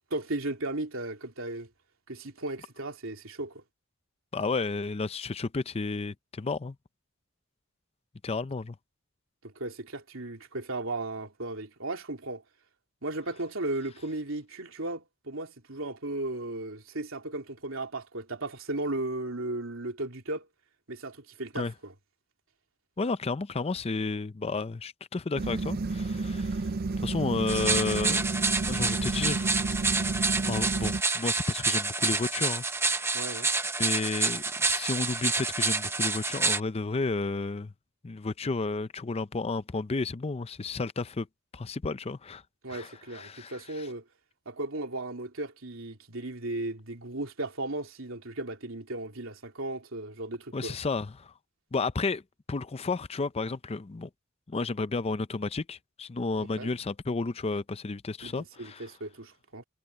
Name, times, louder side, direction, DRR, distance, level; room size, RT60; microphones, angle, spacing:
voice 1, 0.1-1.7 2.1-3.6 9.4-12.4 13.0-20.5 20.9-21.9 33.1-33.5 42.6-44.0 44.5-50.7 56.6-56.7 58.2-58.3 58.6-59.6, right 2 dB, 75° right, 3.4 m, -36 dB
voice 2, 4.3-6.8 8.2-8.7 21.6-21.7 23.0-26.7 27.0-28.2 28.7-29.5 30.5-33.2 33.8-37.7 38.0-41.3 41.5-42.4 42.7-43.8 50.5-51.3 51.7-52.2 52.5-54.1 54.5-58.8, left 3 dB, 30° left, 0.5 m, -32 dB
sound 1, 25.4-31.0, right 3 dB, 50° right, 0.5 m, -31 dB
sound 2, 27.5-36.6, right 3 dB, 10° right, 0.9 m, -28 dB
head